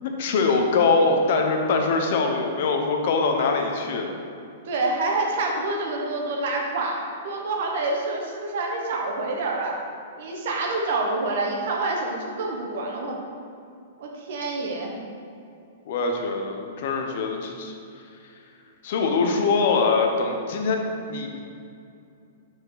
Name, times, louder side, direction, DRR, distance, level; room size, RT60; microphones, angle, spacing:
voice 1, 0.0-4.1 15.9-17.7 18.8-21.4, left 4 dB, 60° left, 3 dB, 0.8 m, -23 dB
voice 2, 4.6-9.8 10.1-13.2 14.0-14.9, right 2 dB, 65° right, 0 dB, 1.1 m, -27 dB
5.4 x 4.5 x 3.9 m, 2.5 s
hypercardioid pair, 140°, 0 cm